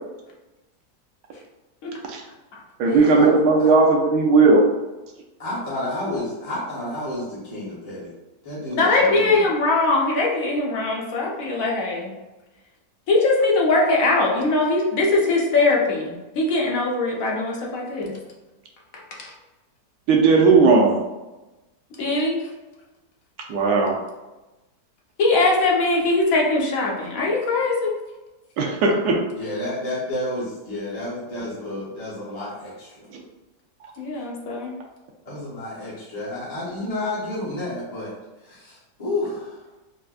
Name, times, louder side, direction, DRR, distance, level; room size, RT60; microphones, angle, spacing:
voice 1, 2.8-4.6 20.1-20.9 23.5-23.9 28.6-29.2, right 4 dB, 85° right, 0 dB, 1.2 m, -16 dB
voice 2, 5.4-8.1 8.4-9.5 29.3-33.1 34.2-34.3 35.2-39.6, left 1 dB, 30° left, -9 dB, 0.8 m, -31 dB
voice 3, 8.7-12.1 13.1-18.2 19.2-19.3 22.0-22.4 25.2-27.9 34.0-34.7, left 2 dB, 65° left, -2 dB, 1.0 m, -21 dB
4.2 x 2.4 x 2.3 m, 1.1 s
omnidirectional pair, 1.7 m